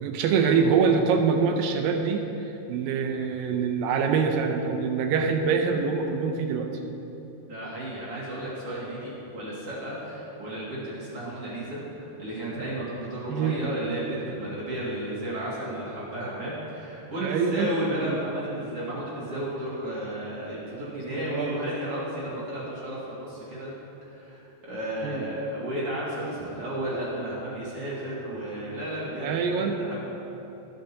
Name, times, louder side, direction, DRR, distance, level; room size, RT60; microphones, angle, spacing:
voice 1, 0.0-6.7 13.3-13.6 17.2-17.8 18.0-18.2 20.8-21.6 25.0-25.2 29.2-29.8, right 5 dB, 80° right, 4 dB, 2.3 m, -25 dB
voice 2, 7.5-23.7 24.0-30.0, right 1 dB, 45° right, -7 dB, 2.7 m, -33 dB
19.0 x 8.9 x 2.8 m, 3.0 s
omnidirectional pair, 4.4 m